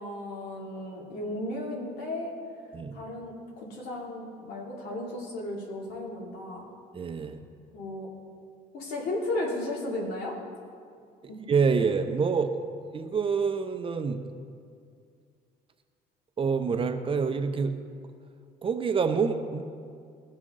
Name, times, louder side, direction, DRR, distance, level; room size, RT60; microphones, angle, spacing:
voice 1, 0.0-2.3 2.9-6.7 7.7-8.1 8.7-10.3 11.3-11.4, left 1 dB, 75° left, -3 dB, 2.7 m, -34 dB
voice 2, 6.9-7.4 11.5-12.6 12.9-14.2 16.4-17.7 18.6-19.6, right 5 dB, 30° right, 7 dB, 0.7 m, -26 dB
17.5 x 5.9 x 3.7 m, 2.3 s
cardioid pair, 110°, 17 cm